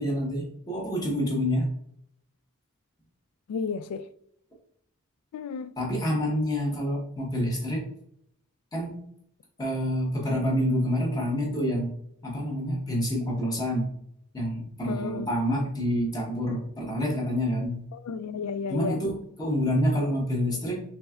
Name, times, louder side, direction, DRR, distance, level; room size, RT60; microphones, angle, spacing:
voice 1, 0.0-1.7 5.8-7.8 8.7-9.0 9.6-11.9 12.2-13.9 14.3-17.8 18.7-20.8, equal, 15° left, 1.0 m, -27 dB
voice 2, 3.5-4.0 5.3-5.7 14.9-15.3 17.9-19.0, left 5 dB, 85° left, 0.3 m, -32 dB
4.3 x 3.3 x 2.3 m
head